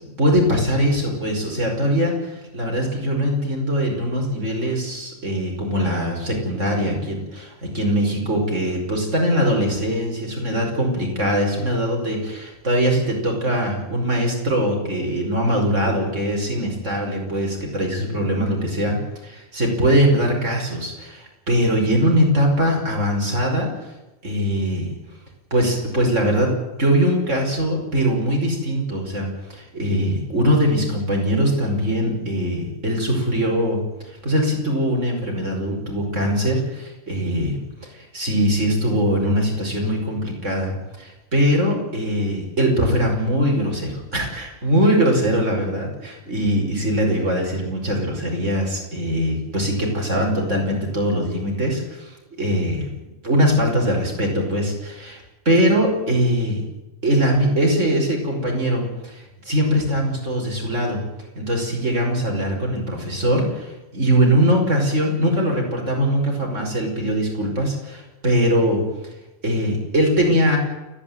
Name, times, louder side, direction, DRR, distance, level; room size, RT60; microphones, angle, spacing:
voice 1, 0.2-23.7 24.2-24.9 25.5-33.8 34.1-37.6 37.9-52.1 52.4-52.9 53.2-56.6 57.0-61.0 61.4-68.9 69.4-70.6, equal, 65° right, 0 dB, 5.8 m, -21 dB
29.5 x 9.9 x 9.1 m, 1.0 s
omnidirectional pair, 1.3 m